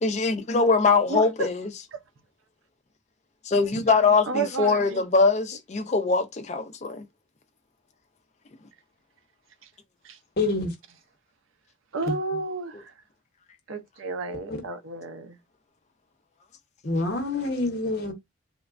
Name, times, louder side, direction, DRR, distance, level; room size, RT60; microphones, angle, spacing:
voice 1, 0.0-1.7 3.5-7.0, left 4 dB, 35° left, 0.4 m, -22 dB
voice 2, 1.1-1.5 1.9-2.0 3.7-3.8 4.3-5.0 11.9-12.7 13.7-15.3, right 3 dB, 85° right, 0.5 m, -31 dB
voice 3, 10.4-10.7 12.1-12.2 16.8-18.1, left 2 dB, 50° left, 0.8 m, -26 dB
3.0 x 2.2 x 2.4 m
head